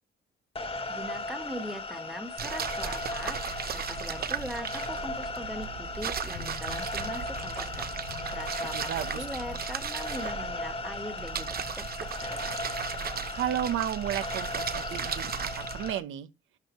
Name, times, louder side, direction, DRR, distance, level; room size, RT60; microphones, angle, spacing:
sound 1, 0.6-16.0, left 2 dB, 30° left, 1.7 m, -37 dB
voice 1, 0.9-3.4 3.7-7.9 8.3-11.8 12.2-12.6, equal, ahead, 1.5 m, -40 dB
sound 2, 2.4-15.9, right 7 dB, 50° right, 0.9 m, -36 dB
sound 3, 6.3-9.7 10.2-10.3, left 10 dB, 80° left, 0.9 m, -47 dB
voice 2, 8.6-9.3 13.3-16.3, right 11 dB, 85° right, 1.0 m, -33 dB
12.5 x 4.5 x 3.1 m
cardioid pair, 90°, 20 cm